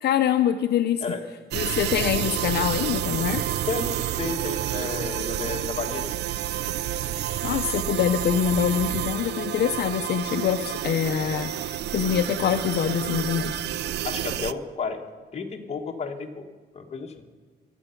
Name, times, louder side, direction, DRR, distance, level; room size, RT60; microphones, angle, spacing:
voice 1, 0.0-1.0 1.5-3.5 7.4-13.6, left 9 dB, 65° left, 7 dB, 0.6 m, -25 dB
sound 1, 1.5-14.5, right 11 dB, 70° right, 0.4 m, -29 dB
voice 2, 3.7-6.2 14.0-15.0 15.3-16.4 16.7-17.2, left 5 dB, 35° left, 3 dB, 1.5 m, -32 dB
22.5 x 7.8 x 5.8 m, 1.5 s
cardioid pair, 150°, 18 cm